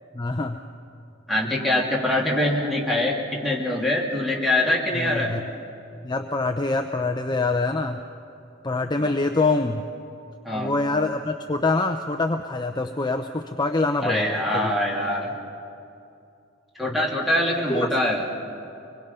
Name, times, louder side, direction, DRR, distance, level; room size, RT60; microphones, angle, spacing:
voice 1, 0.1-0.6 4.9-5.5 6.0-8.0 8.6-9.8 10.5-14.7 17.7-17.8, left 3 dB, 20° left, 6 dB, 0.6 m, -25 dB
voice 2, 1.3-5.3 9.0-9.1 10.4-10.7 14.0-15.3 16.8-18.2, left 1 dB, ahead, -3 dB, 2.9 m, -24 dB
24.5 x 21.0 x 5.6 m, 2.6 s
head